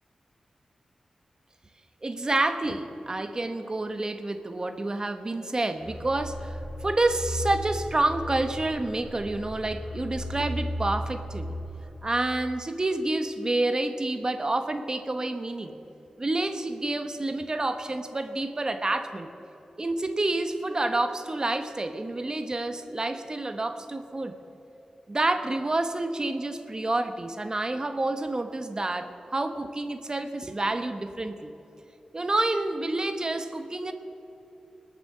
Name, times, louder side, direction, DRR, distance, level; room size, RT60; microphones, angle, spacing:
voice 1, 2.0-11.6 12.0-15.8 16.2-19.3 19.8-24.4 25.1-31.5 32.1-33.9, right 2 dB, 35° right, 8 dB, 1.0 m, -28 dB
sound 1, 5.8-12.3, equal, 25° left, 3.7 m, -36 dB
20.0 x 8.4 x 6.7 m, 2.9 s
cardioid pair, 60°, 2 cm